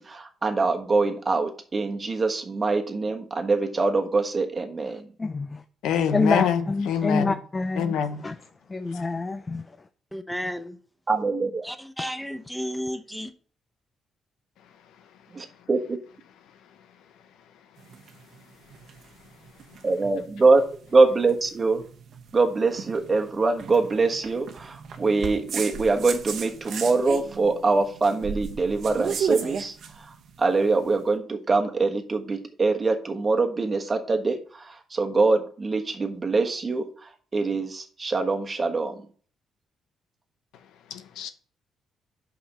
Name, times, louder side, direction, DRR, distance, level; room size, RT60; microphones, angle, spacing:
voice 1, 0.0-5.1 11.1-11.6 15.3-16.0 19.8-20.6 20.9-21.8 22.3-29.7 30.4-36.9 37.3-39.0, right 3 dB, 30° right, 1.4 m, -24 dB
voice 2, 5.2-5.6 6.1-8.0 8.2-8.4 8.7-9.9 12.0-12.1, left 3 dB, 25° left, 0.5 m, -27 dB
voice 3, 5.8-7.3 7.8-8.2 40.9-41.3, left 8 dB, 85° left, 0.8 m, -25 dB
voice 4, 10.1-10.8 11.6-13.3, equal, 5° left, 0.8 m, -32 dB
sound 1, 17.8-31.0, right 7 dB, 65° right, 1.0 m, -36 dB
5.7 x 5.2 x 5.5 m
cardioid pair, 90°, 0 cm